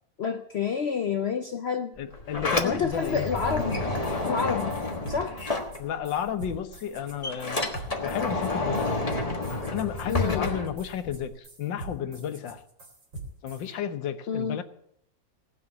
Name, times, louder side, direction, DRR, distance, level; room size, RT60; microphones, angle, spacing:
voice 1, 0.2-1.9 2.6-3.9 4.3-4.8 5.1-5.4 10.1-10.5 14.3-14.6, left 6 dB, 65° left, 7 dB, 0.6 m, -28 dB
voice 2, 2.0-3.3 5.8-7.6 8.0-9.0 9.5-12.6 13.4-14.6, left 9 dB, 85° left, 10 dB, 1.7 m, -32 dB
Sliding door, 2.0-6.3 6.6-11.3, left 2 dB, 20° left, 1.3 m, -30 dB
sound 1, 3.0-3.1 3.4-13.7, right 2 dB, 85° right, 3.6 m, -43 dB
18.0 x 6.3 x 8.3 m, 0.72 s
omnidirectional pair, 2.0 m